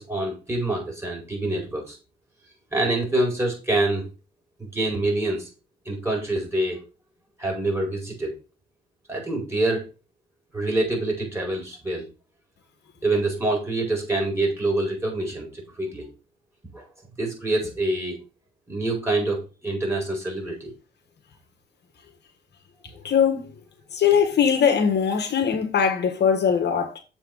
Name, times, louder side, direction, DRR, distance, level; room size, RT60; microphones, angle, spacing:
voice 1, 0.0-2.0 2.7-4.1 4.6-5.5 5.8-6.8 7.4-8.3 9.1-9.9 10.5-12.1 13.0-16.1 16.7-16.9 17.2-18.2 18.7-20.7, right 2 dB, 15° right, 4.8 m, -26 dB
voice 2, 23.0-23.5 23.9-27.0, left 7 dB, 60° left, 1.5 m, -21 dB
7.3 x 4.4 x 5.4 m
cardioid pair, 90°, 20 cm